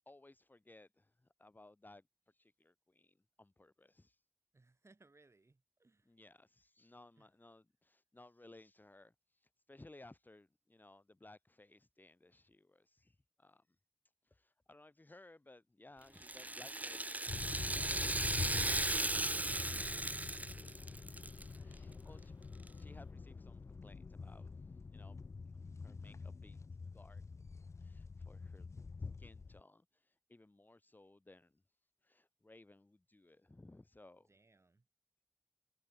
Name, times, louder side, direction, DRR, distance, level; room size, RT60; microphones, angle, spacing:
voice 1, 0.1-4.2 6.1-13.6 14.2-17.1 20.7-20.8 21.6-22.3 22.7-25.3 25.8-27.2 27.8-28.7 29.2-31.5 32.0-34.3, left 2 dB, 40° left, 1.2 m, -61 dB
voice 2, 4.5-6.1 7.2-7.3 17.7-20.8 21.5-22.2 34.2-34.9, right 3 dB, 70° right, 6.7 m, -68 dB
Rattle (instrument), 16.2-21.4 21.7-21.8 22.7-22.8, right 2 dB, 30° right, 0.6 m, -37 dB
sound 1, 17.3-29.6, left 4 dB, 80° left, 0.3 m, -46 dB
wide cardioid pair, 60°, 5 cm